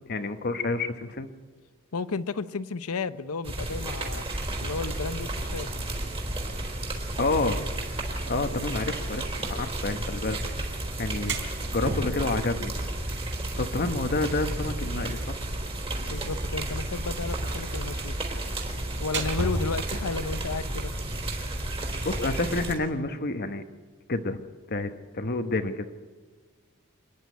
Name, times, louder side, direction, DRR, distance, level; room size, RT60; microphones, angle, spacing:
voice 1, 0.1-1.3 7.2-7.6 8.3-10.4 11.0-12.7 13.1-13.2 13.6-15.4 22.0-23.6 24.1-24.4 24.7-25.8, left 2 dB, 45° left, 8 dB, 1.1 m, -29 dB
voice 2, 1.9-4.3 4.6-5.7 16.1-18.1 19.0-20.9, left 4 dB, 85° left, 14 dB, 0.7 m, -33 dB
sound 1, 3.4-22.8, right 1 dB, 25° right, 3.6 m, -32 dB
sound 2, 10.9-22.2, right 2 dB, 55° right, 4.2 m, -39 dB
27.0 x 10.5 x 9.3 m, 1.5 s
head